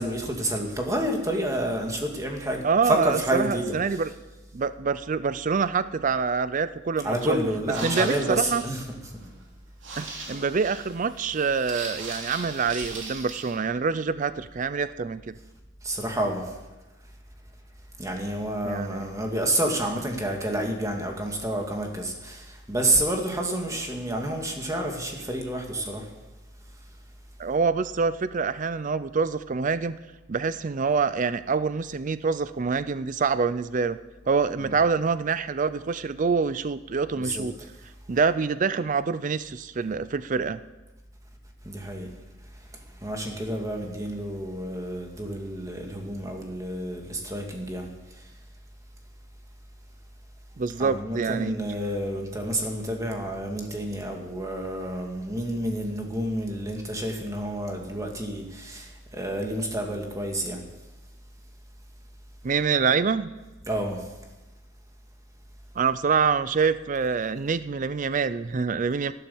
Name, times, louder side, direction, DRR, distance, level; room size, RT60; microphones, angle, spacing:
voice 1, 0.0-4.0 7.0-8.8 15.8-16.4 18.0-26.1 34.6-34.7 37.1-37.5 41.6-42.1 43.0-47.9 50.8-60.6 63.7-64.0, right 1 dB, 15° right, 2 dB, 2.1 m, -29 dB
voice 2, 2.6-4.1 4.5-7.4 7.8-8.6 10.0-15.3 18.6-19.0 27.4-30.0 30.3-34.0 34.3-37.5 38.1-40.6 50.6-51.6 62.4-63.3 65.8-69.1, right 5 dB, 40° right, 15 dB, 0.4 m, -26 dB
sound 1, 7.6-13.5, right 3 dB, 60° right, 3.2 m, -39 dB
12.0 x 12.0 x 7.0 m, 1.1 s
head